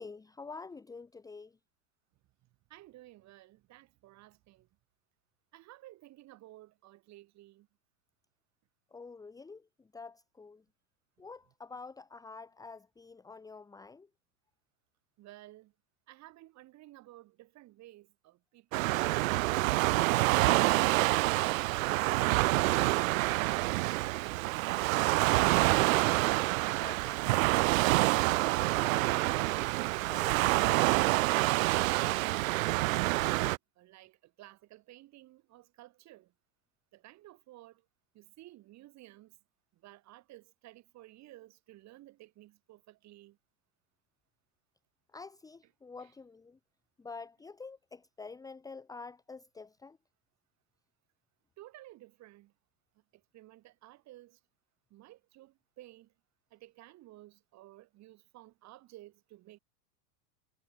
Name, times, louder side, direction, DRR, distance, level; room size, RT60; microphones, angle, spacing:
voice 1, 0.0-1.6 8.9-10.6 11.2-14.1 26.7-27.7 28.3-29.7 30.1-30.7 45.1-46.6 47.0-50.0, left 4 dB, 5° left, 1.4 m, -48 dB
voice 2, 2.7-4.7 5.5-7.7 15.2-15.7 16.1-19.6 33.0-36.3 36.9-37.9 38.1-39.4 39.7-43.4 46.0-46.1 51.6-52.5 53.1-54.4 54.9-56.1 56.5-59.6, right 16 dB, 35° right, 5.4 m, -55 dB
Waves surf, 18.7-33.6, right 21 dB, 55° right, 0.9 m, -27 dB
supercardioid pair, 145°, 50 cm